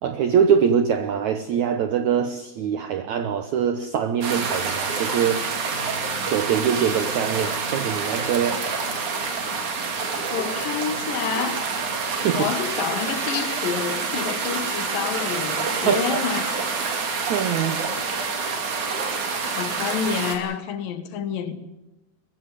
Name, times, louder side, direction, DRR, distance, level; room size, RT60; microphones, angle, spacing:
voice 1, 0.0-5.5 6.3-8.6 12.2-12.5 15.8-16.2 17.3-17.9, right 7 dB, 85° right, 1.6 m, -23 dB
sound 1, 4.2-20.4, right 4 dB, 55° right, 3.6 m, -27 dB
voice 2, 10.3-11.6 12.3-16.6 19.6-21.6, left 7 dB, 65° left, 2.8 m, -28 dB
21.5 x 15.0 x 9.6 m
omnidirectional pair, 4.6 m